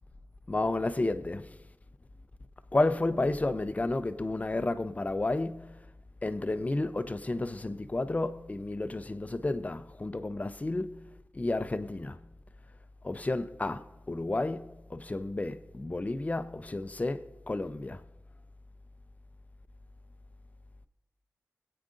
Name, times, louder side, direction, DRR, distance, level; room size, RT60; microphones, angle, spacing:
voice 1, 0.5-1.6 2.7-5.8 6.2-11.1 11.3-12.2 13.0-18.0, left 2 dB, 30° left, 0.5 m, -31 dB
25.0 x 8.6 x 2.6 m
wide cardioid pair, 85°, 5 cm